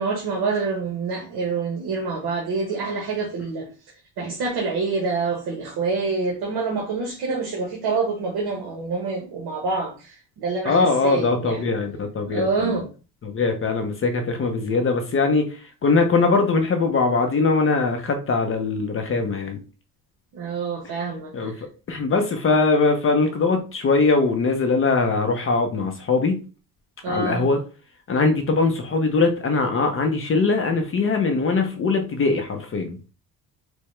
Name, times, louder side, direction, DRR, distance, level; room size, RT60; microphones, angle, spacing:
voice 1, 0.0-3.7 4.2-10.8 11.0-11.6 12.3-12.9 20.3-21.5 27.0-27.5, right 4 dB, 70° right, 1.0 m, -26 dB
voice 2, 10.6-12.8 13.2-19.6 20.8-20.9 21.3-21.5 21.9-26.4 27.1-27.6 28.1-33.0, left 4 dB, 35° left, 0.5 m, -21 dB
4.6 x 2.1 x 3.2 m
cardioid pair, 140°, 40 cm